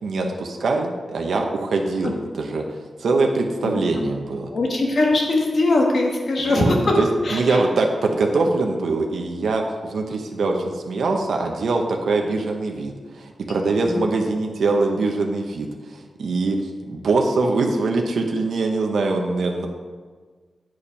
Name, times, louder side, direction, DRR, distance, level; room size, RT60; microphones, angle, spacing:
voice 1, 0.0-2.6 3.0-4.5 6.4-19.7, right 3 dB, 85° right, 2 dB, 0.8 m, -23 dB
voice 2, 4.5-6.9 7.2-7.6 13.5-14.1, left 2 dB, 55° left, -1 dB, 1.5 m, -21 dB
8.7 x 4.8 x 5.3 m, 1.5 s
wide cardioid pair, 160°, 0 cm